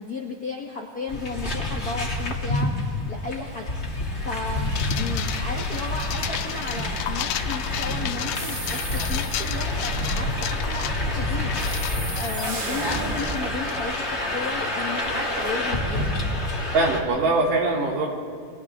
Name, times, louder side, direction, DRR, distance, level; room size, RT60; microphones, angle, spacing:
voice 1, 0.0-16.1, left 3 dB, 45° left, -2 dB, 1.2 m, -34 dB
sound 1, 1.1-17.0, left 1 dB, 25° left, 2.2 m, -28 dB
sound 2, 4.8-14.3, left 12 dB, 75° left, 1.8 m, -34 dB
sound 3, 8.3-9.5 11.5-14.0, right 2 dB, 50° right, 0.6 m, -34 dB
voice 2, 16.7-18.1, right 2 dB, 80° right, -2 dB, 4.5 m, -23 dB
30.0 x 26.0 x 3.7 m, 2.1 s
omnidirectional pair, 3.7 m